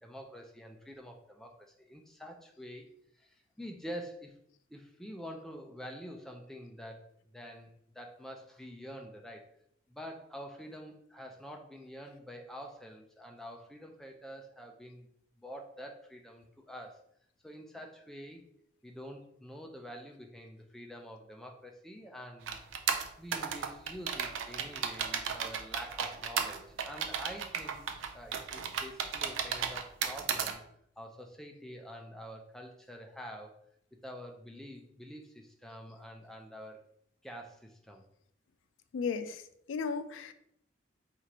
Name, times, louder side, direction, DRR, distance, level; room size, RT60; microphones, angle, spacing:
voice 1, 0.0-2.9 3.1-4.3 4.7-9.5 9.9-15.1 15.4-17.0 17.4-18.4 18.8-22.6 23.2-27.8 28.1-30.6 31.0-33.6 34.0-36.9 37.2-38.0, equal, ahead, 2 dB, 0.3 m, -47 dB
sound 1, 22.5-30.5, right 7 dB, 85° right, 0.4 m, -34 dB
voice 2, 38.9-40.3, left 5 dB, 80° left, 11 dB, 0.3 m, -35 dB
4.5 x 2.4 x 2.9 m, 0.71 s
head